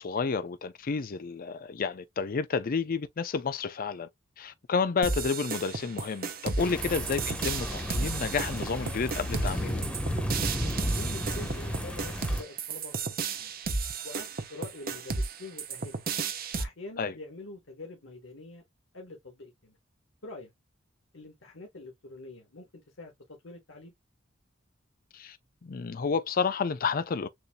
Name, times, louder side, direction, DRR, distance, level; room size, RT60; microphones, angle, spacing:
voice 1, 0.0-4.1 4.4-9.8 17.0-17.1 25.1-25.4 25.6-27.3, left 5 dB, 45° left, 0.5 m, -30 dB
sound 1, 5.0-16.6, right 4 dB, 50° right, 0.9 m, -33 dB
sound 2, 6.6-12.4, equal, 5° left, 1.0 m, -33 dB
voice 2, 11.0-13.5 14.0-16.0 16.6-18.6 18.9-19.8 20.2-20.5 21.1-23.9, left 2 dB, 70° left, 1.3 m, -45 dB
6.8 x 2.7 x 2.2 m
head